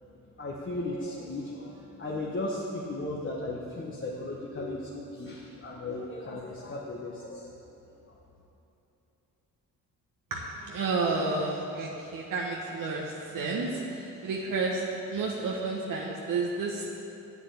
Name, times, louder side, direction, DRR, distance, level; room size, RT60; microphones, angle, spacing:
voice 1, 0.4-7.5 8.1-8.2, left 2 dB, 35° left, -4 dB, 1.4 m, -36 dB
voice 2, 10.3-16.9, right 3 dB, 65° right, -2 dB, 1.3 m, -31 dB
7.9 x 7.4 x 8.0 m, 3.0 s
supercardioid pair, 70°, 35 cm